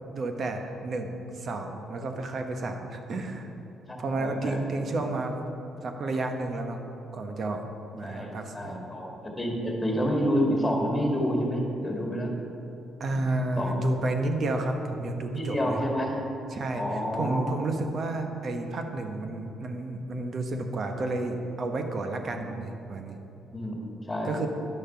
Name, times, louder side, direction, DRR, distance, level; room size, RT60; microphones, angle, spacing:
voice 1, 0.1-3.5 4.0-5.4 5.8-6.8 7.1-7.6 7.9-8.9 13.0-15.8 16.5-16.8 17.1-23.2 24.2-24.5, right 2 dB, 50° right, 5 dB, 1.1 m, -31 dB
voice 2, 3.9-4.8 8.0-12.3 13.6-13.7 15.3-16.2 16.7-17.4 22.3-22.4 23.5-23.8 24.1-24.4, equal, 10° left, -1 dB, 2.1 m, -29 dB
10.5 x 6.5 x 5.8 m, 2.9 s
cardioid pair, 90°, 0 cm